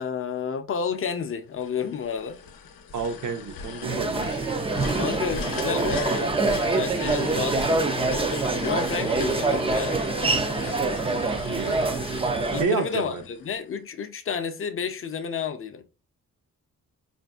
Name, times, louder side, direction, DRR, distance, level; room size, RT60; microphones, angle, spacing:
voice 1, 0.0-2.4 5.0-10.0 12.5-15.8, left 6 dB, 40° left, 0.5 m, -31 dB
sound 1, 1.6-13.7, left 6 dB, 80° left, 0.7 m, -38 dB
voice 2, 2.9-4.4 11.4-11.8 12.6-13.2, right 5 dB, 60° right, 0.7 m, -29 dB
sound 2, 3.8-12.6, right 3 dB, 20° right, 0.3 m, -25 dB
4.7 x 2.5 x 2.3 m
wide cardioid pair, 135°, 34 cm